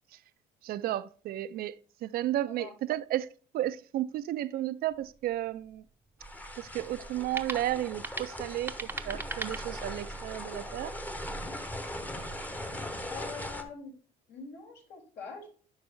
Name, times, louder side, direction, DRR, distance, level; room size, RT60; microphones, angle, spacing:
voice 1, 0.6-3.3 3.5-5.8 6.6-8.7 9.0-10.9 12.1-12.2 12.7-12.8, right 13 dB, 60° right, 0.4 m, -33 dB
sound 1, 4.9-10.2, right 3 dB, 15° right, 0.6 m, -42 dB
sound 2, 6.2-13.6, equal, 10° left, 0.9 m, -39 dB
voice 2, 13.1-13.9 14.3-15.5, left 5 dB, 75° left, 3.2 m, -44 dB
11.0 x 4.7 x 2.6 m
cardioid pair, 110°, 17 cm